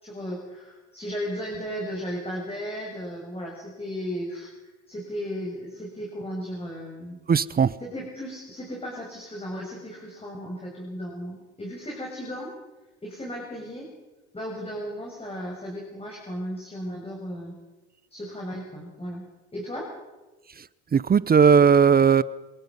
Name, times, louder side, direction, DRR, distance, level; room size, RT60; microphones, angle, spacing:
voice 1, 0.0-4.5 4.9-7.2 7.8-12.5 13.0-13.9 14.3-17.6 18.1-19.2 19.5-19.9, equal, 15° left, 6.7 m, -35 dB
voice 2, 7.3-7.8 20.6-20.7 20.9-22.2, right 6 dB, 25° right, 0.7 m, -17 dB
27.0 x 18.0 x 5.5 m
supercardioid pair, 80°, 34 cm